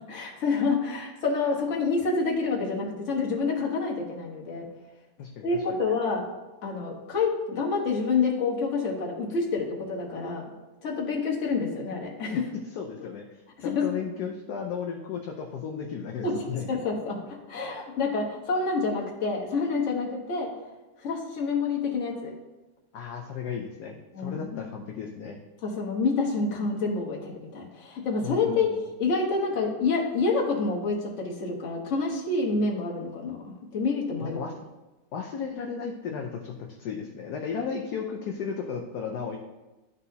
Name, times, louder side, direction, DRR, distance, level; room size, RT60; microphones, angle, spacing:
voice 1, 0.1-4.7 5.4-6.3 6.6-10.4 10.8-12.5 13.6-13.9 16.2-20.5 21.0-22.3 24.1-24.5 25.6-28.7 29.0-34.4, left 4 dB, 40° left, -2 dB, 1.3 m, -28 dB
voice 2, 5.2-5.8 12.3-12.4 12.7-16.7 22.9-25.4 28.2-28.6 34.2-34.5 35.1-39.4, left 6 dB, 65° left, 1 dB, 1.0 m, -34 dB
12.0 x 4.1 x 2.8 m, 1.1 s
omnidirectional pair, 2.2 m